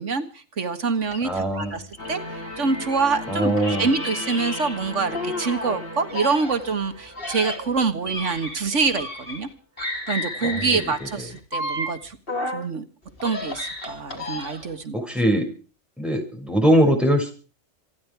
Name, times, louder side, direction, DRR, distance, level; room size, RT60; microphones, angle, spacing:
voice 1, 0.0-1.8 2.1-2.2 2.6-3.5 3.8-9.5 10.1-12.2 12.5-12.8 13.2-15.0, right 4 dB, 90° right, 9 dB, 2.0 m, -25 dB
sound 1, 1.1-3.2 3.6-5.8 6.1-9.5 9.8-12.7 13.1-14.8, left 1 dB, 50° left, 4.5 m, -33 dB
voice 2, 1.2-1.8 3.3-3.9 10.4-10.8 14.9-15.5 16.0-17.3, right 1 dB, ahead, 2 dB, 6.3 m, -21 dB
sound 2, 2.0-8.0, left 1 dB, 65° left, 6.0 m, -37 dB
27.0 x 11.0 x 4.8 m, 0.39 s
omnidirectional pair, 1.2 m